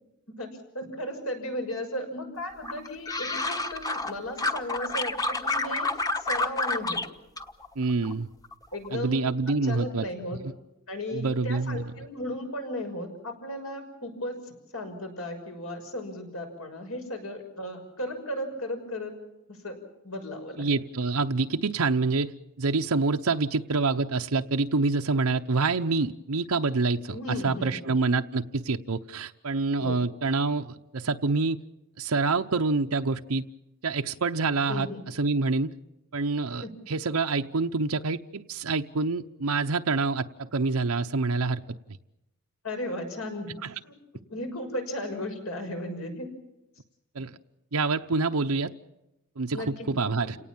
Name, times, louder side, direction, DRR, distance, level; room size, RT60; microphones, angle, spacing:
voice 1, 0.4-7.0 8.7-10.4 10.9-14.4 14.7-19.1 19.5-19.8 20.0-20.7 27.1-28.0 29.8-30.0 34.7-35.0 36.6-36.7 42.6-43.5 43.8-43.9 44.3-46.3 49.5-49.9 50.2-50.4, left 1 dB, 80° left, 5 dB, 6.3 m, -35 dB
sound 1, 2.6-4.1 4.4-7.1 7.4-8.1 8.4-8.9, left 2 dB, 15° left, 1.1 m, -29 dB
voice 2, 7.8-8.3 8.9-10.0 10.4-10.5 11.1-11.9 20.6-22.3 22.6-27.2 27.4-31.6 32.0-33.5 33.8-35.7 36.1-41.6 43.6-43.7 47.1-47.3 47.7-48.7 49.4-50.4, right 3 dB, 90° right, 5 dB, 0.8 m, -27 dB
30.0 x 18.5 x 7.3 m, 0.94 s
head